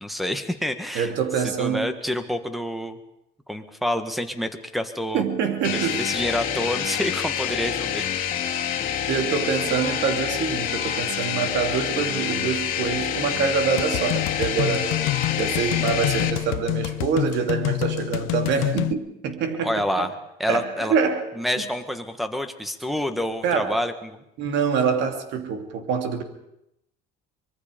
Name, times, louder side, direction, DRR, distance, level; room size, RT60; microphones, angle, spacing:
voice 1, 0.0-1.1 1.4-3.0 3.5-5.2 5.7-8.0 19.6-20.1 20.4-20.9 21.3-24.2, left 1 dB, ahead, 1.5 m, -28 dB
voice 2, 0.9-1.9 5.1-6.1 9.1-15.0 15.4-20.1 20.5-21.2 23.4-23.8 24.4-26.2, right 6 dB, 60° right, 2.8 m, -25 dB
sound 1, 5.6-16.3, left 9 dB, 40° left, 2.7 m, -27 dB
sound 2, 13.8-18.9, left 19 dB, 80° left, 0.8 m, -27 dB
24.5 x 22.5 x 5.2 m
cardioid pair, 145°, 20 cm